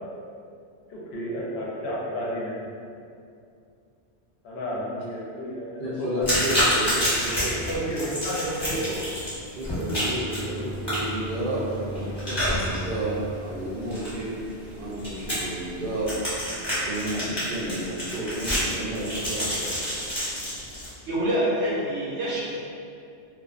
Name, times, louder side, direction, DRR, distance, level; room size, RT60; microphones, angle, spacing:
voice 1, 0.9-2.5 4.4-6.7 7.3-9.0, equal, 70° left, -4 dB, 0.8 m, -32 dB
voice 2, 5.8-7.5 9.5-14.4 14.7-16.1 16.8-19.8, right 1 dB, 60° right, -7 dB, 0.6 m, -31 dB
sound 1, 6.2-20.9, equal, 25° left, 0.9 m, -29 dB
Bowed string instrument, 9.7-14.7, right 1 dB, 50° left, 0.4 m, -38 dB
voice 3, 21.1-22.5, equal, 80° right, -7 dB, 1.0 m, -26 dB
2.3 x 2.2 x 2.4 m, 2.4 s
omnidirectional pair, 1.2 m